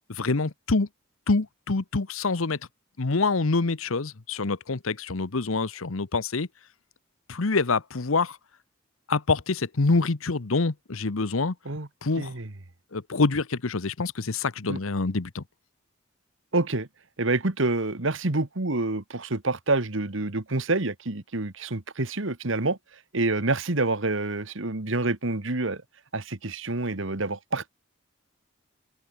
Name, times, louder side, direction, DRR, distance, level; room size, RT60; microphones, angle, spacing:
voice 1, 0.1-0.9 1.3-2.6 3.0-6.5 7.3-8.4 9.1-11.5 12.0-12.3 12.9-15.4, left 3 dB, 80° left, 1.0 m, -26 dB
voice 2, 12.2-12.5 14.7-14.8 16.5-16.9 17.2-22.8 23.1-25.8 26.1-27.7, right 2 dB, 70° right, 1.7 m, -27 dB
open air
head